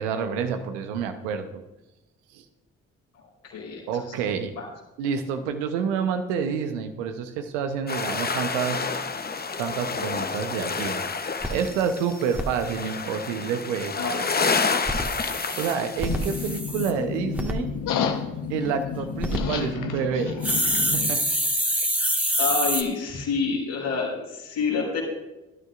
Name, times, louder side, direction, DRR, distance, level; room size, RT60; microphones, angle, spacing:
voice 1, 0.0-1.5 2.3-2.4 3.9-4.5 5.0-8.9 9.6-11.0 11.5-13.9 15.6-17.7 18.5-21.2, right 6 dB, 80° right, 8 dB, 1.0 m, -28 dB
voice 2, 3.4-4.0 4.6-4.7 14.0-14.3 22.4-25.0, left 4 dB, 75° left, -5 dB, 4.7 m, -28 dB
sound 1, 7.9-16.6, left 4 dB, 25° left, 1.0 m, -29 dB
sound 2, 10.8-10.9 11.1-11.2 11.4-12.4 14.7-16.9 17.4-17.5 19.0-19.4 20.4-22.8, equal, 5° right, 1.7 m, -26 dB
sound 3, 16.1-21.1, left 7 dB, 60° left, 1.1 m, -30 dB
19.0 x 12.0 x 2.5 m, 1.0 s
hypercardioid pair, 40°, 36 cm